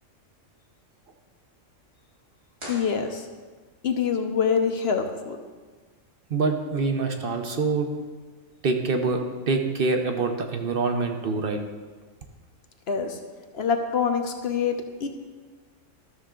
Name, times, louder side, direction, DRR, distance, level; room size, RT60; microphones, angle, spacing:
sound 1, 2.5-3.7, right 1 dB, 65° right, 3.1 m, -42 dB
voice 1, 2.7-3.3 3.8-5.4 12.9-13.2 13.5-15.1, left 6 dB, 60° left, 5 dB, 0.8 m, -25 dB
voice 2, 6.3-7.9 8.6-9.2 9.5-11.6, right 4 dB, 50° right, 5 dB, 0.8 m, -25 dB
12.5 x 6.5 x 3.7 m, 1.4 s
omnidirectional pair, 1.4 m